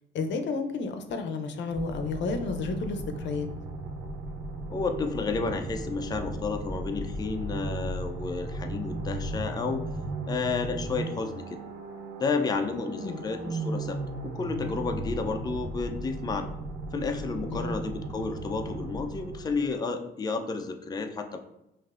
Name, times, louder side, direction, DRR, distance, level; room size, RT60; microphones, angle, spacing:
voice 1, 0.1-3.5 13.0-13.2 17.5-17.7, left 4 dB, 65° left, 6 dB, 0.6 m, -31 dB
sound 1, 1.7-19.8, right 2 dB, 70° right, 0.6 m, -36 dB
voice 2, 4.7-9.8 10.3-11.6 12.2-16.5 16.9-21.4, left 4 dB, 20° left, 4 dB, 0.4 m, -31 dB
5.4 x 2.5 x 2.4 m, 0.87 s
cardioid pair, 90°, 20 cm